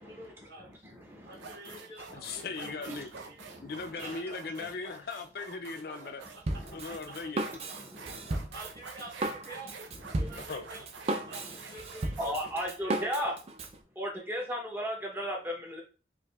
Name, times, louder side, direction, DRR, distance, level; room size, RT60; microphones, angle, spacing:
voice 1, 0.0-0.7 1.2-3.4 4.0-4.7 5.8-5.9 6.5-6.6 8.5-9.7 10.1-10.8 11.2-13.2, right 2 dB, 55° right, -12 dB, 1.8 m, -48 dB
sound 1, 0.7-0.9 1.3-13.7, right 4 dB, 85° right, 0.6 m, -48 dB
voice 2, 2.1-3.1 3.6-6.2 6.7-7.4 10.5-10.6, left 4 dB, 50° left, 7 dB, 0.4 m, -38 dB
Drum kit, 6.5-13.8, right 2 dB, 35° right, 0.4 m, -35 dB
voice 3, 10.0-10.4 11.2-11.3 12.2-13.3 14.0-15.8, equal, 10° right, 0 dB, 0.8 m, -35 dB
4.7 x 2.6 x 2.3 m, 0.36 s
head